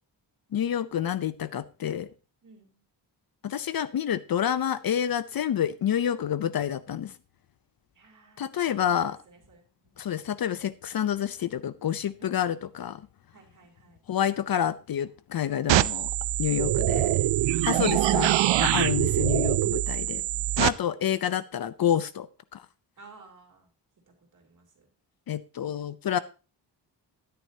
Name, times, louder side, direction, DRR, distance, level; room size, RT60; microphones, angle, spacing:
voice 1, 0.5-2.1 3.4-7.1 8.4-9.2 10.0-13.0 14.1-16.1 16.4-17.2 17.7-18.3 18.6-20.2 20.6-22.6 25.3-26.2, left 9 dB, 55° left, 15 dB, 0.6 m, -28 dB
voice 2, 2.4-2.8 7.9-9.9 12.2-12.7 13.3-14.0 16.9-17.7 19.8-20.6 23.0-23.7 24.1-24.9, right 4 dB, 45° right, 1 dB, 3.4 m, -55 dB
sound 1, 15.7-20.7, right 14 dB, 85° right, 0.6 m, -24 dB
12.5 x 10.5 x 2.8 m, 0.32 s
wide cardioid pair, 160°, 43 cm